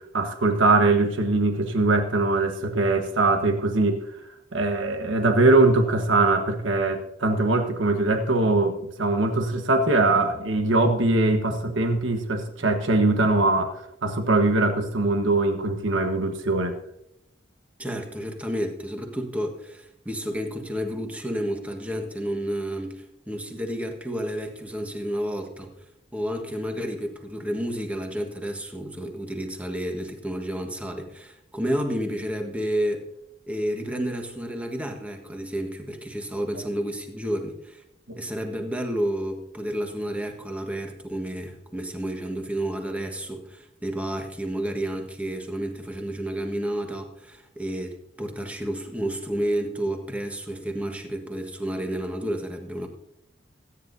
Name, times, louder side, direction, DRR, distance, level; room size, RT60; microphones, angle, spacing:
voice 1, 0.1-4.0 4.5-16.8 38.1-38.2, right 2 dB, 90° right, 5 dB, 1.3 m, -22 dB
voice 2, 17.8-25.7 26.1-33.0 33.5-37.8 38.2-52.9, right 1 dB, 5° right, 3 dB, 1.4 m, -30 dB
25.5 x 9.9 x 2.7 m, 0.80 s
head